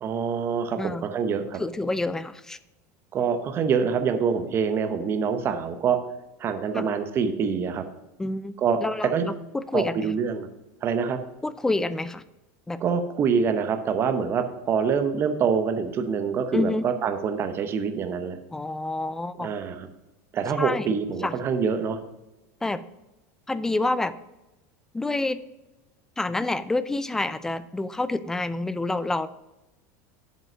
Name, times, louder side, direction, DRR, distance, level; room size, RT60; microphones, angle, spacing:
voice 1, 0.0-1.6 3.1-6.0 6.4-7.8 8.6-8.8 9.1-9.3 9.7-10.5 10.8-11.2 12.8-18.4 19.4-19.9 20.3-22.0, right 6 dB, 30° right, 8 dB, 0.8 m, -25 dB
voice 2, 1.6-2.6 6.7-6.9 8.2-8.5 8.8-10.1 11.4-12.2 12.7-12.8 16.5-16.9 18.5-19.5 20.6-20.9 21.2-21.4 22.6-22.8 23.5-24.1 24.9-25.4 26.2-29.3, left 2 dB, 5° left, 15 dB, 0.3 m, -28 dB
7.7 x 5.3 x 6.1 m, 1.0 s
supercardioid pair, 150°, 8 cm